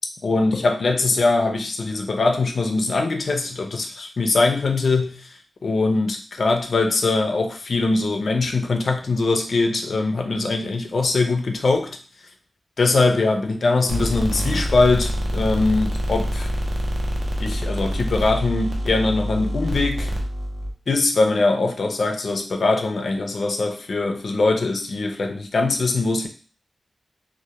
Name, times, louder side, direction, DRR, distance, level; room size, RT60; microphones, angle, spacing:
voice 1, 0.2-5.3 5.6-12.0 12.8-16.5 17.4-20.1 20.9-26.3, left 3 dB, 55° left, 4 dB, 0.3 m, -22 dB
sound 1, 13.9-20.7, equal, 45° right, 0.5 m, -26 dB
2.1 x 2.0 x 2.8 m, 0.39 s
wide cardioid pair, 155°, 0 cm